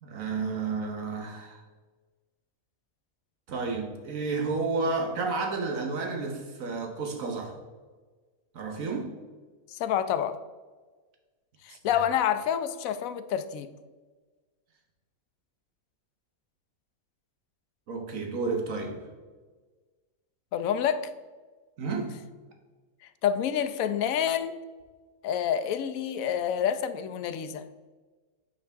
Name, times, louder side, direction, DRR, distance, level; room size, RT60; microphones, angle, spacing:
voice 1, 0.0-1.6 3.5-7.5 8.5-9.1 11.7-11.8 17.9-19.0 21.8-22.2, right 4 dB, 65° right, 3 dB, 1.5 m, -31 dB
voice 2, 9.7-10.4 11.6-13.7 20.5-21.1 23.2-24.6 25.2-27.7, left 9 dB, 70° left, 11 dB, 0.9 m, -28 dB
8.9 x 4.9 x 3.5 m, 1.4 s
omnidirectional pair, 1.6 m